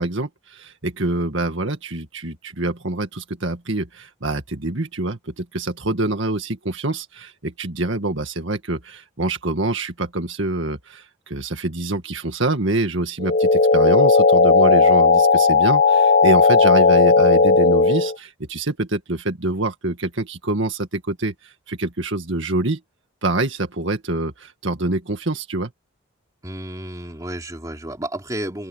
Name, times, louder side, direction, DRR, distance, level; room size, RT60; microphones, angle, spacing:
voice 1, 0.0-22.8 23.2-25.7, right 2 dB, 60° right, 1.9 m, -25 dB
sound 1, 13.2-18.2, left 4 dB, 45° left, 0.9 m, -15 dB
voice 2, 26.4-28.7, right 1 dB, 15° right, 3.0 m, -31 dB
open air
head